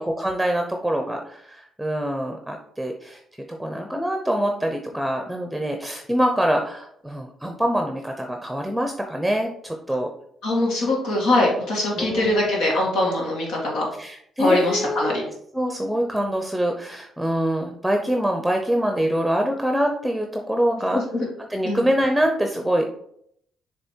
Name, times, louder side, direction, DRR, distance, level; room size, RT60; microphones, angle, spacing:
voice 1, 0.0-3.2 3.6-10.1 12.0-12.5 14.0-15.3 15.5-21.0 21.4-22.9, equal, 5° right, 3 dB, 0.7 m, -25 dB
voice 2, 10.4-13.9 14.4-15.2 20.9-21.3 21.6-21.8, left 1 dB, 90° left, -2 dB, 2.2 m, -22 dB
6.8 x 3.4 x 4.5 m, 0.71 s
cardioid pair, 90°, 0 cm